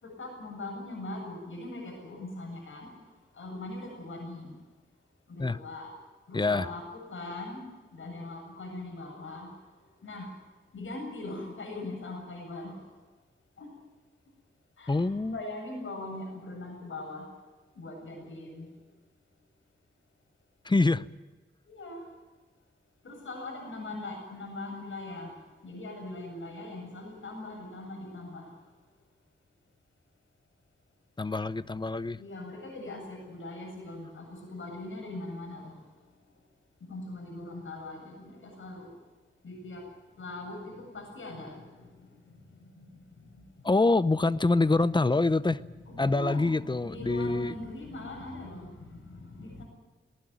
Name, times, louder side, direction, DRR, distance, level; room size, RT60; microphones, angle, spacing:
voice 1, 0.0-2.9 3.4-4.5 5.3-5.9 6.3-7.6 7.9-9.5 10.0-10.3 10.7-12.8 13.6-13.7 14.8-17.3 17.8-18.7 21.7-22.0 23.0-25.3 25.6-28.5 32.2-35.7 36.8-38.9 39.4-39.8 40.2-41.6 42.8-42.9 44.7-44.8 45.8-49.6, left 2 dB, 90° left, 1 dB, 7.5 m, -41 dB
voice 2, 6.3-6.7 14.9-15.4 20.6-21.1 31.2-32.2 43.6-45.6 46.0-47.5, left 3 dB, 25° left, 15 dB, 0.7 m, -25 dB
19.5 x 19.0 x 9.5 m, 1.3 s
wide cardioid pair, 110°, 20 cm